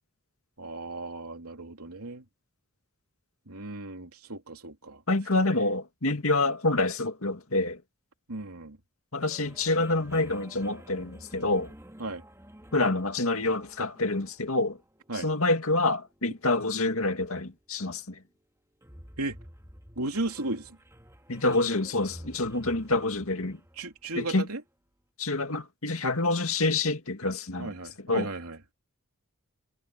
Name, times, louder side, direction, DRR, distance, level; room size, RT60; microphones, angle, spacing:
voice 1, 0.6-2.2 3.5-5.0 8.3-8.8 12.0-12.2 15.1-15.3 19.2-19.4 19.9-20.8 23.8-24.6 27.6-28.6, right 2 dB, 85° right, 3.3 m, -35 dB
voice 2, 5.1-7.8 9.1-11.7 12.7-14.8 15.2-18.2 21.3-23.6 24.2-24.5 25.2-27.7 28.1-28.3, left 2 dB, 70° left, 2.2 m, -27 dB
sound 1, 9.3-24.7, equal, 10° right, 3.5 m, -51 dB
head